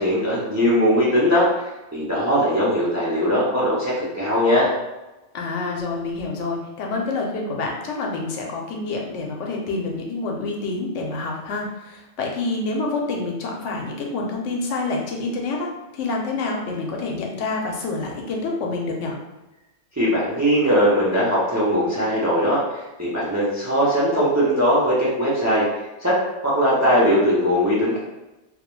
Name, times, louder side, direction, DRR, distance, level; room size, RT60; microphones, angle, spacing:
voice 1, 0.0-1.5 1.9-4.7 20.0-22.6 23.0-25.6 26.0-26.2 26.4-28.0, equal, 25° right, -7 dB, 0.4 m, -20 dB
voice 2, 5.3-19.2, left 3 dB, 85° left, 0 dB, 0.9 m, -27 dB
2.3 x 2.1 x 3.0 m, 1.0 s
omnidirectional pair, 1.2 m